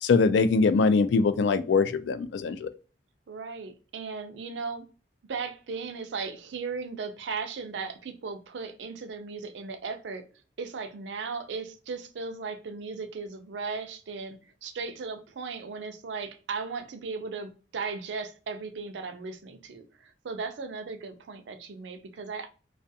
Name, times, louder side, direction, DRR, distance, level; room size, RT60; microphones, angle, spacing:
voice 1, 0.0-2.7, left 4 dB, 75° left, 0.3 m, -22 dB
voice 2, 3.3-4.8 5.3-10.2 10.6-22.5, right 4 dB, 80° right, 0.4 m, -37 dB
2.4 x 2.3 x 2.6 m
head